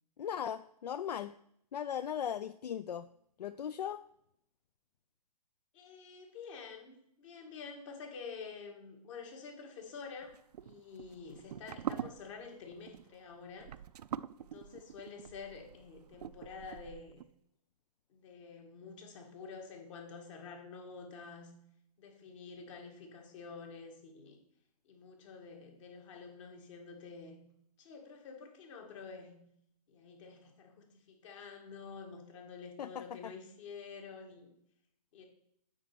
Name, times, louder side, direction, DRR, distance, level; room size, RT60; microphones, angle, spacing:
voice 1, 0.2-1.3 1.7-3.1 3.4-4.0 32.8-33.3, left 9 dB, 80° left, 14 dB, 0.4 m, -38 dB
voice 2, 5.7-13.7 14.4-17.3 18.1-21.5 22.0-24.4 24.8-27.4 27.8-29.4 29.9-34.5 35.1-35.2, left 5 dB, 50° left, 3 dB, 2.1 m, -49 dB
sound 1, 10.2-17.2, right 9 dB, 70° right, 0.4 m, -44 dB
8.9 x 4.2 x 5.9 m, 0.72 s
hypercardioid pair, 130°, 21 cm